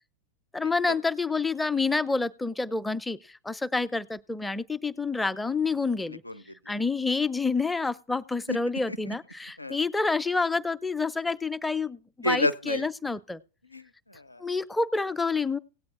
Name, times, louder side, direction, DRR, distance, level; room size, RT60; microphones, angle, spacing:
voice 1, 0.5-6.2 6.7-13.4 14.4-15.6, left 4 dB, 5° left, 15 dB, 0.4 m, -28 dB
voice 2, 6.1-6.7 8.5-8.6 8.9-9.1 9.6-9.8 12.2-12.9 13.7-14.5, left 1 dB, 85° left, 15 dB, 0.5 m, -31 dB
17.0 x 8.6 x 3.7 m, 0.36 s
figure-of-eight pair, 90°, 0 cm